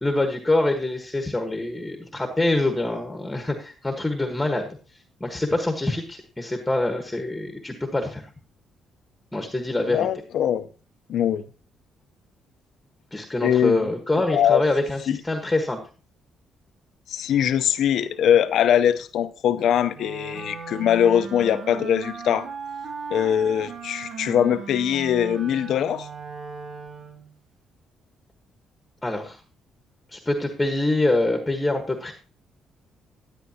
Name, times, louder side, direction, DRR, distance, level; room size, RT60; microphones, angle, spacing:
voice 1, 0.0-4.7 5.2-8.2 9.3-10.1 13.1-15.8 29.0-29.4 30.1-32.1, left 2 dB, 10° left, 1.4 m, -25 dB
voice 2, 9.9-10.7 11.1-11.4 13.4-13.9 14.3-14.6 15.1-15.2 17.1-22.5 23.1-26.1, left 9 dB, 75° left, 0.7 m, -22 dB
Wind instrument woodwind instrument, 19.9-27.3, right 5 dB, 70° right, 1.9 m, -37 dB
11.5 x 9.9 x 2.9 m
cardioid pair, 90°, 0 cm